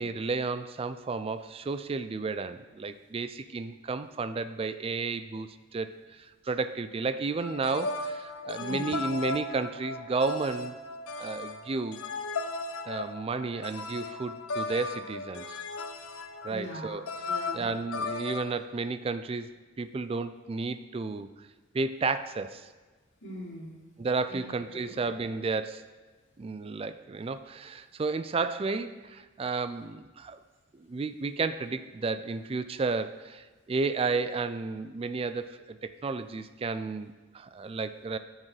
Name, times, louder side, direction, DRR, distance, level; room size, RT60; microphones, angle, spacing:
voice 1, 0.0-10.7 11.2-12.0 12.8-15.6 16.4-17.0 17.5-19.5 19.8-21.3 21.7-22.7 24.0-25.9 26.4-30.4 30.7-38.2, right 4 dB, 25° right, 11 dB, 0.3 m, -32 dB
sound 1, 7.4-18.5, left 3 dB, 90° left, 0.7 m, -36 dB
voice 2, 8.6-9.0 16.5-17.7 23.2-23.8 24.3-24.4 24.7-24.9, equal, 60° left, -5 dB, 2.6 m, -41 dB
12.5 x 6.4 x 3.3 m, 1.3 s
head